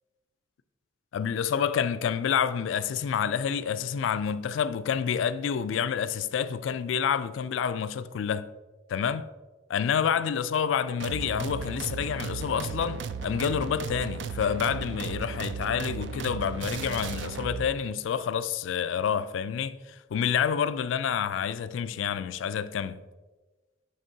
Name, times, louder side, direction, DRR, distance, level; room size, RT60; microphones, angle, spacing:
voice 1, 1.1-8.5 8.9-9.3 9.7-23.0, left 7 dB, 85° left, 0.3 m, -28 dB
sound 1, 11.0-17.7, right 5 dB, 70° right, 0.4 m, -35 dB
11.0 x 3.6 x 2.7 m
head